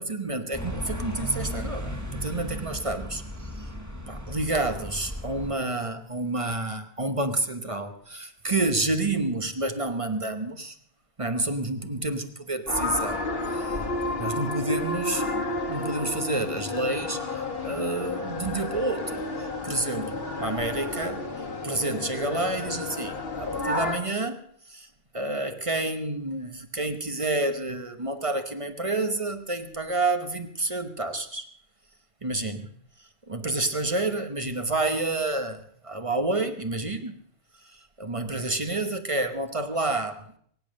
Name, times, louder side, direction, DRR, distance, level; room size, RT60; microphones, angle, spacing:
voice 1, 0.0-3.7 4.1-10.8 11.2-21.3 21.6-24.4 24.7-24.9 25.1-31.5 32.2-32.7 33.0-37.1 37.6-40.2, right 2 dB, 30° right, 8 dB, 1.1 m, -29 dB
sound 1, 0.5-5.6, equal, 15° right, 1.9 m, -35 dB
sound 2, 12.7-24.0, left 2 dB, 65° left, 1.9 m, -31 dB
22.5 x 8.7 x 6.4 m, 0.62 s
omnidirectional pair, 1.1 m